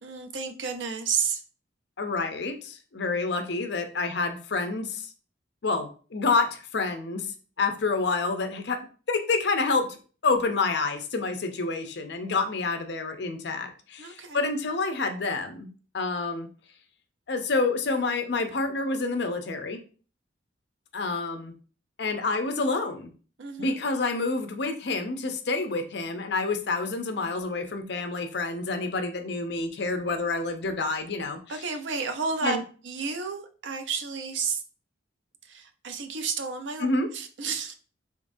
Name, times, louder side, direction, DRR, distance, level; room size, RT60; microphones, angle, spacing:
voice 1, 0.0-1.4 14.0-14.5 23.4-23.8 31.5-32.6 32.8-34.6 35.4-36.9 37.1-37.7, right 5 dB, 70° right, 7 dB, 0.5 m, -31 dB
voice 2, 2.0-5.1 5.6-8.8 9.1-10.0 10.2-15.7 15.9-16.5 17.3-19.8 20.9-21.5 22.0-23.1 23.6-31.4 32.4-32.6 36.8-37.1, left 3 dB, 60° left, 7 dB, 0.6 m, -28 dB
3.7 x 3.5 x 2.6 m, 0.39 s
head